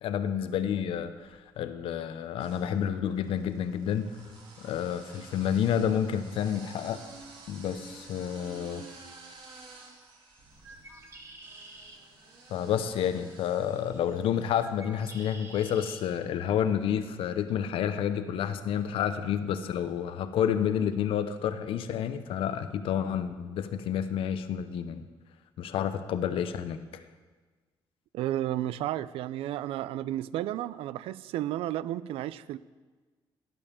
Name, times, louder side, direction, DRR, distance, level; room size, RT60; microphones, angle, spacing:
voice 1, 0.0-4.1 4.6-7.0 7.5-8.8 12.5-25.1 25.6-27.0, left 9 dB, 75° left, 11 dB, 0.8 m, -30 dB
sound 1, 1.0-1.7 2.4-14.7, right 3 dB, 60° right, 2.7 m, -51 dB
Bird, 10.5-16.0, right 2 dB, 30° right, 1.9 m, -51 dB
voice 2, 28.1-32.6, right 13 dB, 85° right, 17 dB, 0.4 m, -32 dB
15.5 x 5.4 x 6.9 m, 1.4 s
cardioid pair, 105°, 9 cm